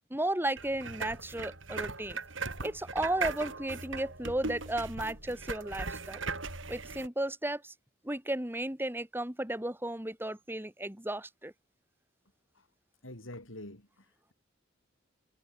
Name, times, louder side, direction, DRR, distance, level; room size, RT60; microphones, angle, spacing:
voice 1, 0.1-2.2 2.6-6.2 6.7-7.7 8.0-11.5, right 1 dB, 10° right, 3.2 m, -34 dB
sound 1, 0.6-7.1, right 4 dB, 75° right, 6.1 m, -39 dB
voice 2, 13.0-14.3, left 1 dB, 90° left, 6.9 m, -47 dB
head